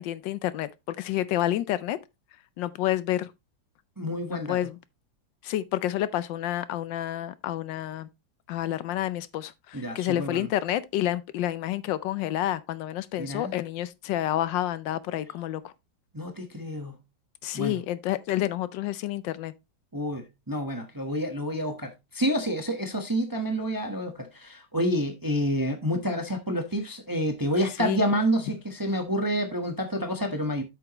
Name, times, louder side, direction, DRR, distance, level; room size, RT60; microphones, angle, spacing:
voice 1, 0.0-2.0 2.6-3.3 4.3-4.8 5.4-8.1 8.5-15.7 17.4-19.5 27.8-28.0, left 13 dB, 80° left, 1.3 m, -29 dB
voice 2, 4.0-4.6 9.7-10.5 13.2-13.5 16.1-17.0 17.5-17.8 19.9-30.6, equal, 15° right, 0.8 m, -28 dB
8.2 x 7.0 x 2.9 m
omnidirectional pair, 2.0 m